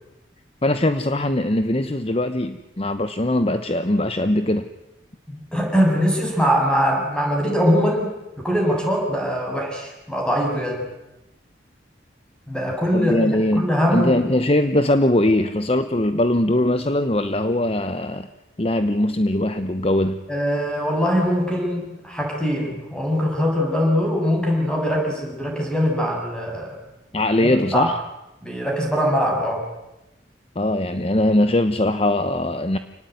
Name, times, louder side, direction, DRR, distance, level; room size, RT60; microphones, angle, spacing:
voice 1, 0.6-4.6 12.9-18.3 18.6-20.2 27.1-28.0 30.6-32.8, left 1 dB, 30° left, 10 dB, 1.0 m, -21 dB
voice 2, 5.3-10.8 12.5-14.3 20.3-26.8 27.4-27.9 28.4-29.6, equal, 5° left, 0 dB, 7.4 m, -22 dB
28.5 x 19.0 x 9.4 m, 0.98 s
head